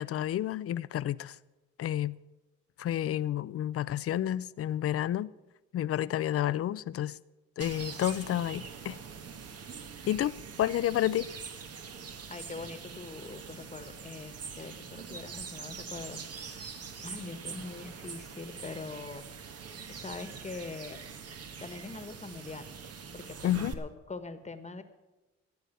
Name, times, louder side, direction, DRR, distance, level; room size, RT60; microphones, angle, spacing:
voice 1, 0.0-1.4 1.8-2.2 2.8-5.3 5.7-7.2 7.6-9.0 10.1-11.3 23.4-23.7, left 12 dB, 50° left, 0.5 m, -30 dB
sound 1, 7.6-23.7, right 6 dB, 55° right, 1.4 m, -44 dB
voice 2, 12.3-16.7 17.0-19.2 19.9-21.0 21.6-22.7 23.1-24.8, left 3 dB, 20° left, 1.4 m, -43 dB
14.0 x 8.3 x 7.7 m
cardioid pair, 90°, 30 cm